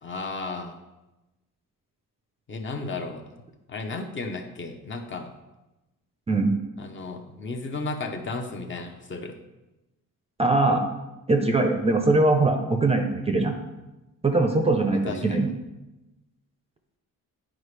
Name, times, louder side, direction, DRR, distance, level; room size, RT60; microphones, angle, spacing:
voice 1, 0.0-0.8 2.5-3.2 3.7-5.3 6.8-9.4 14.9-15.4, left 3 dB, 35° left, 4 dB, 0.7 m, -34 dB
voice 2, 10.4-10.9 11.3-13.5 14.2-15.5, right 2 dB, 20° right, 4 dB, 0.5 m, -21 dB
9.9 x 4.9 x 3.2 m, 1.0 s
cardioid pair, 155°, 34 cm